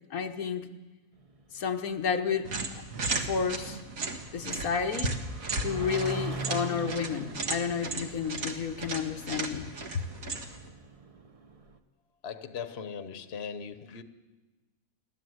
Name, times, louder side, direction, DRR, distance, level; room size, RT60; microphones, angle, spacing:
voice 1, 0.1-0.7 1.5-2.5 3.2-3.8 4.3-5.1 5.6-9.7, left 6 dB, 85° left, 5 dB, 1.6 m, -31 dB
sound 1, 1.2-11.8, right 3 dB, 25° right, 1.1 m, -43 dB
sound 2, 2.4-10.7, right 3 dB, 70° right, 2.1 m, -35 dB
voice 2, 12.2-14.0, left 6 dB, 50° left, 10 dB, 1.2 m, -39 dB
29.5 x 12.0 x 7.9 m, 1.2 s
omnidirectional pair, 1.5 m